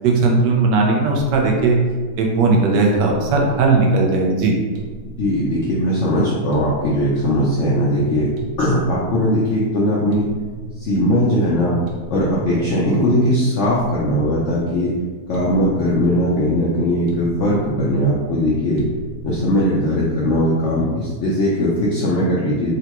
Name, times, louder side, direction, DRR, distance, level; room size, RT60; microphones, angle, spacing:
voice 1, 0.0-1.8 2.2-4.6, right 3 dB, 85° right, 0 dB, 1.3 m, -17 dB
sound 1, 1.2-20.5, right 3 dB, 65° right, 0.9 m, -38 dB
voice 2, 5.2-8.3 8.6-10.3 10.8-11.8 12.1-14.9 15.3-18.9 19.2-22.7, equal, 75° left, -6 dB, 0.6 m, -19 dB
3.8 x 2.2 x 2.9 m, 1.5 s
omnidirectional pair, 1.8 m